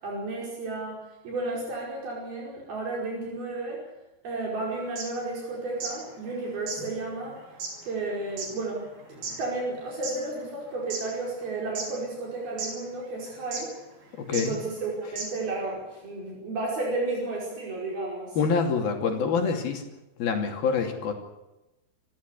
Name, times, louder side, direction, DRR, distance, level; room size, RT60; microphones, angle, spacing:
voice 1, 0.0-3.8 4.2-7.4 7.8-13.7 14.3-18.4, right 2 dB, 70° right, -2 dB, 7.0 m, -33 dB
sound 1, 4.9-6.0 6.3-6.4 6.6-10.2 10.7-11.4 11.7-12.3 12.6-12.7 13.5-13.8 14.3-14.5 14.8-14.9 15.2-15.5, right 4 dB, 90° right, 7.3 m, -35 dB
voice 2, 14.2-14.6 18.4-19.8 20.2-21.1, left 5 dB, 70° left, 3 dB, 4.6 m, -26 dB
28.0 x 15.0 x 8.4 m, 0.98 s
omnidirectional pair, 4.5 m